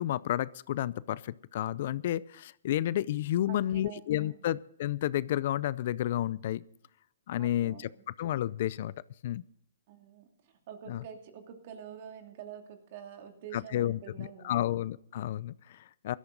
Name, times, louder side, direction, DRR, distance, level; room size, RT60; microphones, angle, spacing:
voice 1, 0.0-6.6 7.3-7.9 8.2-8.9 9.2-9.4 10.9-11.0 13.5-16.1, left 12 dB, 55° left, 20 dB, 0.5 m, -31 dB
voice 2, 3.5-4.4 7.4-7.8 9.9-14.7, right 8 dB, 50° right, 5 dB, 2.6 m, -47 dB
17.0 x 13.0 x 3.9 m, 0.72 s
hypercardioid pair, 135°, 0 cm